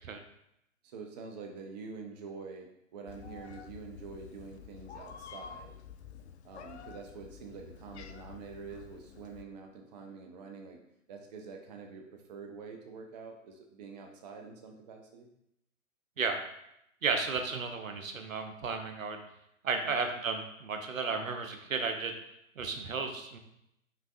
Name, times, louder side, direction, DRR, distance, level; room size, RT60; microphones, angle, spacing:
voice 1, 0.8-5.7 6.4-10.8 11.1-15.3 19.9-20.0, right 5 dB, 35° right, 3 dB, 0.5 m, -46 dB
Meow, 3.1-9.4, left 7 dB, 55° left, 0.5 m, -49 dB
voice 2, 17.0-19.2 19.6-22.2 22.6-23.4, right 4 dB, 75° right, 6 dB, 0.7 m, -33 dB
5.6 x 3.4 x 2.4 m, 0.80 s
figure-of-eight pair, 115°, 40 cm